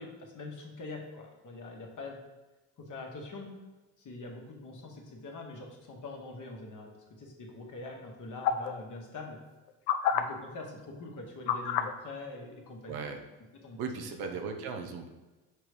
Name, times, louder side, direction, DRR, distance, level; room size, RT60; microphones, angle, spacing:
voice 1, 0.0-2.2 2.8-3.6 4.0-6.9 7.2-9.4 10.1-13.0 13.6-14.3, left 2 dB, 45° left, 0 dB, 1.7 m, -44 dB
sound 1, 8.4-8.7 9.9-10.2 11.5-11.9 12.9-13.0, left 9 dB, 65° left, 0.7 m, -27 dB
voice 2, 12.9-13.2 13.8-15.1, right 5 dB, 55° right, 4 dB, 1.0 m, -37 dB
5.9 x 3.1 x 5.1 m, 1.1 s
hypercardioid pair, 60°, 44 cm